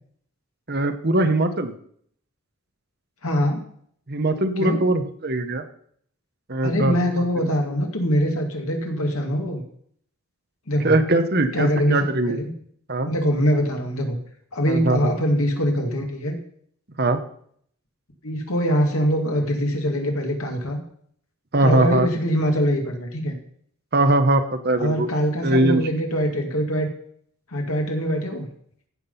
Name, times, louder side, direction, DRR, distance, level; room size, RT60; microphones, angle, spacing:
voice 1, 0.7-1.7 4.1-5.6 6.5-7.0 7.4-7.5 10.8-12.4 12.9-13.1 14.7-15.1 17.0-17.2 21.5-22.1 23.9-25.1 25.4-25.8, right 2 dB, 45° right, 8 dB, 1.0 m, -21 dB
voice 2, 3.2-3.6 4.6-4.9 6.6-9.6 10.7-10.9 11.5-12.0 12.3-12.5 13.1-14.2 14.5-16.4 18.2-20.8 21.6-23.4 24.8-26.9 27.5-28.5, equal, 75° left, 3 dB, 2.2 m, -23 dB
15.0 x 6.1 x 5.6 m, 0.63 s
head